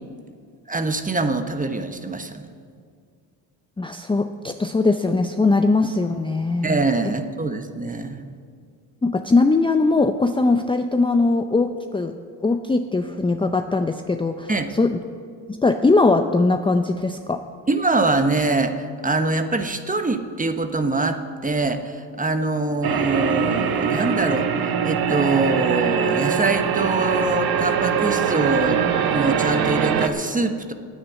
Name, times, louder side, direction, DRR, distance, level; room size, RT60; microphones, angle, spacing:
voice 1, 0.7-2.5 6.6-8.2 14.5-14.7 17.7-24.5 24.8-28.8 29.1-30.7, right 3 dB, 20° right, 7 dB, 1.1 m, -24 dB
voice 2, 3.8-6.7 9.0-15.0 15.5-17.5, left 3 dB, 15° left, 7 dB, 0.5 m, -20 dB
sound 1, 22.8-30.1, right 7 dB, 65° right, 1.0 m, -22 dB
9.9 x 8.8 x 8.1 m, 2.2 s
supercardioid pair, 65°, 40 cm